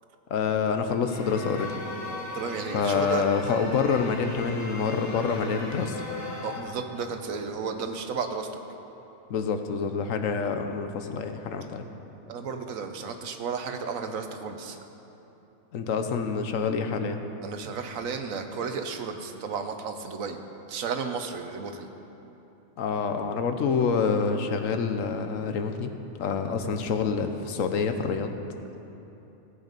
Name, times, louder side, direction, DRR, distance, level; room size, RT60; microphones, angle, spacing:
voice 1, 0.3-1.8 2.7-6.0 9.3-11.8 15.7-17.2 22.8-25.9 26.2-28.4, left 5 dB, 75° left, 7 dB, 1.2 m, -27 dB
sound 1, 1.0-6.6, left 2 dB, 10° left, 1.6 m, -38 dB
voice 2, 2.3-3.2 6.4-8.5 12.3-14.8 17.4-20.4 20.7-21.9, right 5 dB, 85° right, 6 dB, 1.3 m, -33 dB
17.0 x 8.1 x 5.2 m, 3.0 s
omnidirectional pair, 1.4 m